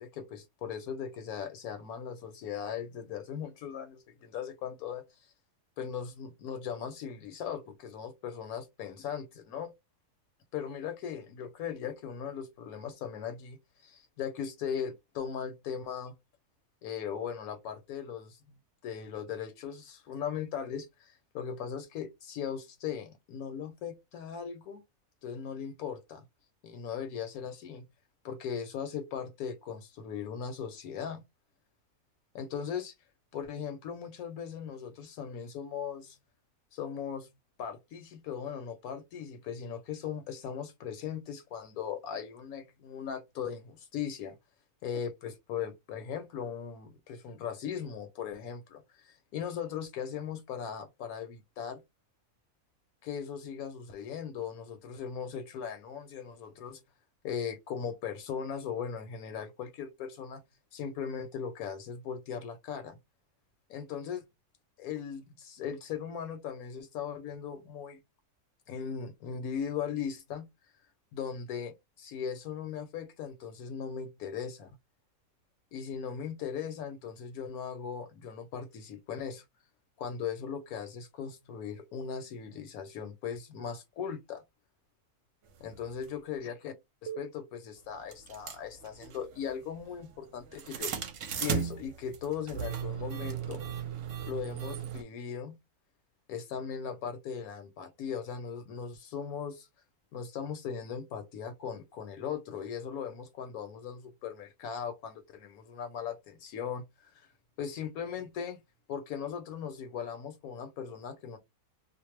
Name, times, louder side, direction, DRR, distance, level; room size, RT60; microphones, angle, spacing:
voice 1, 0.0-5.3 5.8-9.7 10.5-16.2 16.8-18.4 18.8-24.8 25.2-26.2 26.6-27.8 28.2-31.2 32.3-32.9 33.3-36.2 36.7-37.3 37.6-44.4 44.8-51.8 53.0-56.8 57.2-60.4 60.7-63.0 63.7-64.2 64.8-68.0 68.7-70.5 71.1-74.7 75.7-79.4 80.0-84.4 85.6-86.7 87.0-90.9 91.4-93.6 94.3-95.5 96.3-99.7 100.1-107.3 107.6-108.6 108.9-111.4, left 7 dB, 80° left, 1.0 m, -38 dB
sound 1, 86.0-86.1 87.1-87.2 88.1-95.0, right 7 dB, 65° right, 0.9 m, -36 dB
2.5 x 2.0 x 3.0 m
omnidirectional pair, 1.5 m